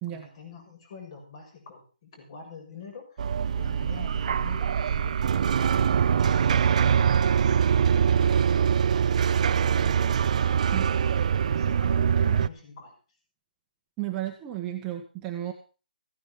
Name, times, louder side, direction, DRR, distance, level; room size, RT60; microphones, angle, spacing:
voice 1, 0.1-6.1 6.8-9.0 9.7-10.2 11.4-12.9, left 5 dB, 40° left, 3 dB, 6.8 m, -46 dB
sound 1, 3.2-12.5, right 7 dB, 50° right, 0.6 m, -23 dB
voice 2, 14.0-15.5, right 13 dB, 15° right, 2 dB, 1.5 m, -33 dB
15.5 x 10.0 x 5.4 m, 0.36 s
hypercardioid pair, 160°, 5 cm